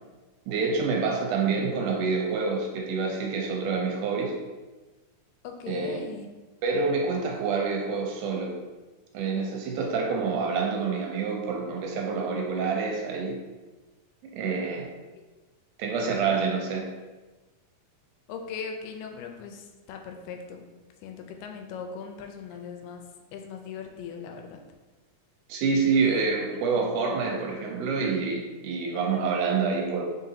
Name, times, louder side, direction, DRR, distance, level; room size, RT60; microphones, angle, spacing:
voice 1, 0.5-4.4 5.7-6.0 6.6-8.5 9.1-13.4 14.3-14.9 15.8-16.9 25.5-30.0, right 4 dB, 80° right, 1 dB, 1.9 m, -27 dB
voice 2, 5.4-6.3 18.3-20.7 21.0-23.0 23.3-24.6 26.0-26.6, left 5 dB, 85° left, 4 dB, 2.2 m, -39 dB
4.8 x 4.0 x 2.7 m, 1.2 s
omnidirectional pair, 4.0 m